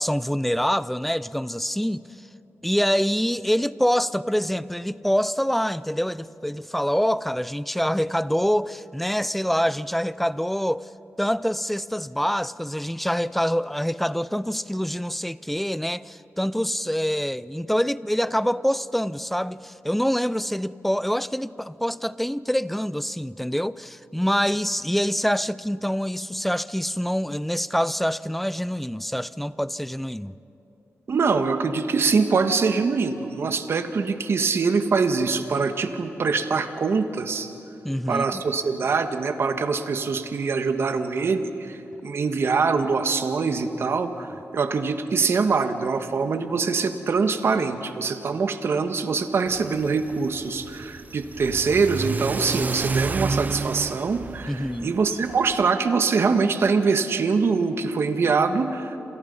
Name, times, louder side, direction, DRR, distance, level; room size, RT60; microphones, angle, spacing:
voice 1, 0.0-2.0 2.6-10.9 11.2-30.3 37.8-38.4 54.5-54.9, equal, 5° left, 0.5 m, -25 dB
voice 2, 31.1-37.5 38.1-44.3 44.5-59.0, right 4 dB, 60° right, 1.6 m, -24 dB
Car / Accelerating revving vroom, 49.5-55.6, right 4 dB, 35° right, 0.7 m, -31 dB
28.5 x 28.0 x 5.6 m
wide cardioid pair, 110°, 5 cm